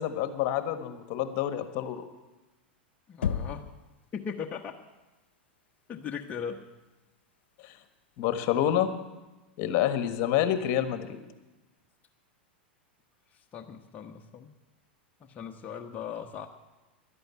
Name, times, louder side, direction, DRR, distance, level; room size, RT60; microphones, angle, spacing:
voice 1, 0.0-2.0 7.6-7.7 8.2-8.9 9.6-11.2, left 11 dB, 50° left, 10 dB, 1.4 m, -28 dB
voice 2, 3.1-3.7 4.1-4.8 5.9-6.6 13.3-14.5 15.3-16.5, left 7 dB, 30° left, 2 dB, 1.1 m, -38 dB
Knock, 3.2-3.9, left 7 dB, 85° left, 0.8 m, -31 dB
11.5 x 11.0 x 8.4 m, 1.1 s
hypercardioid pair, 110°, 6 cm